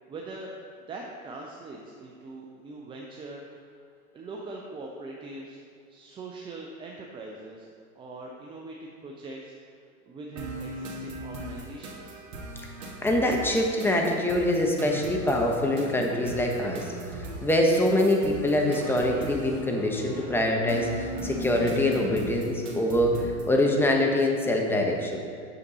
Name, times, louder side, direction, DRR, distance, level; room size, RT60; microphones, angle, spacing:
voice 1, 0.1-0.6 0.9-3.6 4.1-5.6 5.9-7.7 8.0-9.5 10.1-12.2, right 2 dB, 10° right, 0 dB, 0.4 m, -42 dB
sound 1, 10.4-23.5, right 1 dB, 65° right, 1.9 m, -38 dB
voice 2, 13.0-25.2, left 1 dB, 5° left, 0 dB, 1.0 m, -24 dB
9.0 x 6.5 x 4.1 m, 2.4 s
hypercardioid pair, 105°, 44 cm